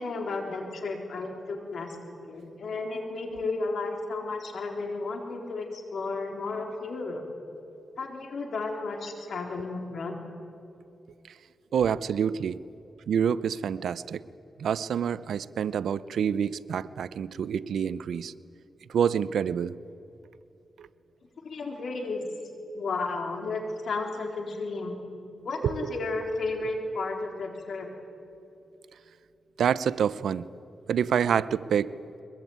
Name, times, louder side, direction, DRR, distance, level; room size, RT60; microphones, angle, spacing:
voice 1, 0.0-2.0 2.2-7.2 8.0-10.1 21.4-22.2 22.7-25.0 25.4-27.9, left 3 dB, 70° left, 3 dB, 3.9 m, -33 dB
voice 2, 11.7-12.6 13.1-14.2 14.6-18.3 18.9-19.7 20.8-20.9 25.6-26.1 29.6-30.5 30.9-31.9, right 8 dB, 85° right, 17 dB, 0.6 m, -27 dB
22.5 x 21.0 x 9.4 m, 2.7 s
cardioid pair, 85°, 0 cm